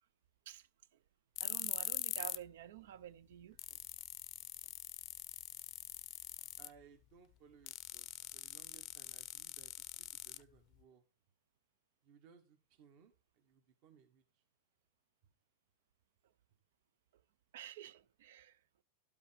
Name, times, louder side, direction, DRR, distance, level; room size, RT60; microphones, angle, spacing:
sound 1, 1.4-2.5 2.8-2.9 3.3-3.4 3.6-6.8 7.7-10.8, left 16 dB, 35° left, 0.5 m, -43 dB
voice 1, 1.4-3.6 17.5-18.6, right 11 dB, 80° right, 0.5 m, -51 dB
voice 2, 6.6-9.9 10.2-11.0 12.0-14.4, right 7 dB, 45° right, 1.2 m, -64 dB
12.0 x 5.2 x 5.0 m
supercardioid pair, 165°, 0 cm